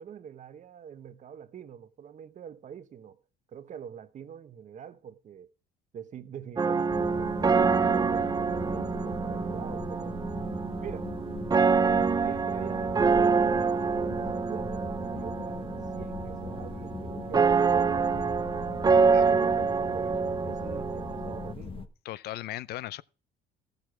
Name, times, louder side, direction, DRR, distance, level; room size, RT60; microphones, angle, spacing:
voice 1, 0.0-3.2 3.5-5.5 5.9-10.1 10.8-11.1 12.2-15.7 15.9-18.5 19.0-21.9, right 8 dB, 45° right, 1.0 m, -44 dB
sound 1, 6.6-21.5, right 5 dB, 25° right, 0.5 m, -26 dB
sound 2, 6.9-21.9, left 5 dB, 35° left, 1.1 m, -40 dB
voice 2, 22.0-23.0, left 15 dB, 70° left, 0.5 m, -37 dB
14.5 x 6.8 x 6.0 m
cardioid pair, 110°, 17 cm